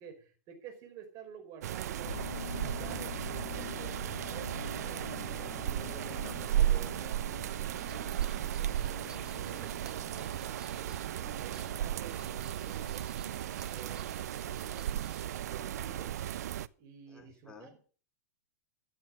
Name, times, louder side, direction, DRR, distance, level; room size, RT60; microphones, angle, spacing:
voice 1, 0.0-2.2 2.5-5.5 7.6-11.0 11.4-13.1 13.6-14.9 15.5-16.1 16.8-17.8, right 7 dB, 35° right, 6 dB, 4.7 m, -51 dB
sound 1, 1.6-16.7, right 11 dB, 70° right, 0.7 m, -35 dB
sound 2, 2.0-16.1, left 8 dB, 85° left, 3.1 m, -48 dB
voice 2, 5.4-7.3 9.1-10.0 17.1-17.7, left 2 dB, 10° left, 3 dB, 3.2 m, -52 dB
sound 3, 7.5-15.3, right 4 dB, 10° right, 1.1 m, -59 dB
14.0 x 8.7 x 6.5 m, 0.40 s
hypercardioid pair, 140°, 9 cm